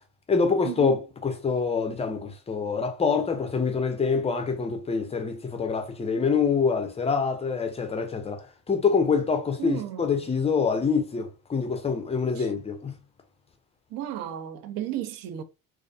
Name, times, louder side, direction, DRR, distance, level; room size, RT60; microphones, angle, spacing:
voice 1, 0.3-13.0, left 5 dB, 15° left, 0.5 m, -26 dB
voice 2, 9.6-10.3 12.4-12.5 13.9-15.4, right 12 dB, 45° right, 0.5 m, -33 dB
2.3 x 2.1 x 2.6 m
hypercardioid pair, 60°, 50 cm